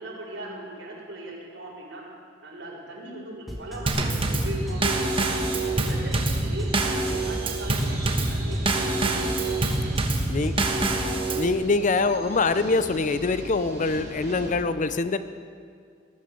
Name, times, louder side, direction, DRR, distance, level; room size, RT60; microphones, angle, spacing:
voice 1, 0.0-2.1 2.4-5.0 5.6-9.7, right 1 dB, 75° right, -5 dB, 4.7 m, -39 dB
sound 1, 3.5-11.2, equal, ahead, 1.9 m, -36 dB
Drum kit / Snare drum / Bass drum, 3.9-11.5, right 2 dB, 30° right, 1.2 m, -26 dB
sound 2, 4.4-14.5, right 2 dB, 60° right, 2.6 m, -42 dB
voice 2, 11.3-15.2, left 3 dB, 40° left, 12 dB, 0.6 m, -24 dB
18.5 x 10.5 x 6.9 m, 2.1 s
head